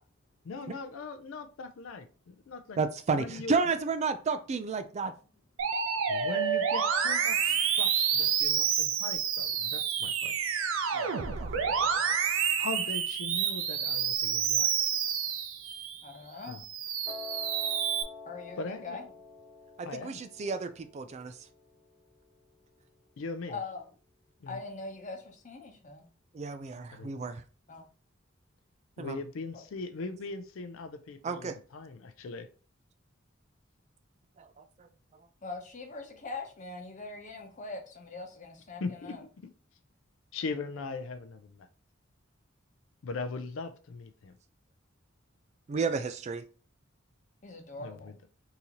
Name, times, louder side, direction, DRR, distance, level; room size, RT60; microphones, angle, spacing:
voice 1, 0.4-2.8 3.2-3.6 6.1-10.4 12.6-14.7 16.5-16.6 18.6-19.0 19.8-20.2 23.2-23.6 24.4-24.6 26.9-27.1 29.0-32.5 38.8-39.2 40.3-41.7 43.0-44.3 47.8-48.1, left 4 dB, 80° left, 9 dB, 0.4 m, -40 dB
voice 2, 2.8-5.1 10.9-11.1 11.4-11.6 19.8-21.4 26.3-27.4 29.0-29.2 31.2-31.6 34.4-34.7 45.7-46.4, right 4 dB, 35° right, 10 dB, 0.3 m, -32 dB
Musical instrument, 5.6-16.0 16.5-18.0, right 7 dB, 85° right, 0.5 m, -29 dB
voice 3, 16.0-16.6 18.2-19.0 23.5-23.9 24.5-26.0 27.7-27.8 29.5-29.6 35.4-39.2 47.4-48.1, left 3 dB, 40° left, 2 dB, 0.9 m, -42 dB
Piano, 17.1-23.2, left 4 dB, 5° right, 1.2 m, -48 dB
3.8 x 2.7 x 2.9 m, 0.37 s
head